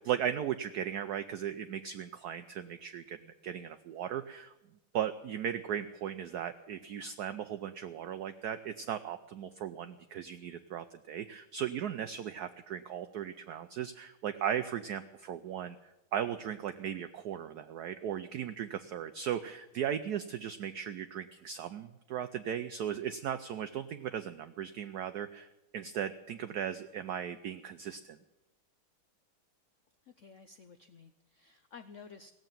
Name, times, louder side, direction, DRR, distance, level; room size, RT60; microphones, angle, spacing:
voice 1, 0.0-4.5 4.9-28.2, right 9 dB, 70° right, 9 dB, 0.9 m, -37 dB
voice 2, 30.0-32.3, left 5 dB, 85° left, 9 dB, 0.6 m, -53 dB
17.0 x 7.8 x 9.0 m, 0.94 s
omnidirectional pair, 2.3 m